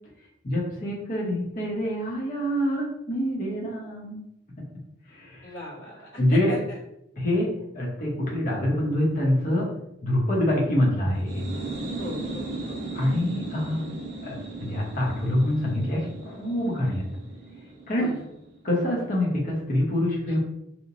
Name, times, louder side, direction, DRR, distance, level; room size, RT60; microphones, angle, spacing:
voice 1, 0.4-4.2 5.1-5.5 6.2-6.5 7.2-9.7 10.0-11.4 12.9-13.9 14.2-17.0 17.9-18.1 18.6-20.4, left 1 dB, 45° left, -4 dB, 0.8 m, -26 dB
voice 2, 5.4-6.8 12.0-12.8 17.9-18.2 20.3-20.4, equal, 90° left, -10 dB, 1.4 m, -39 dB
sound 1, 11.1-18.6, right 2 dB, 60° right, 0.5 m, -37 dB
2.9 x 2.1 x 2.5 m, 0.80 s
head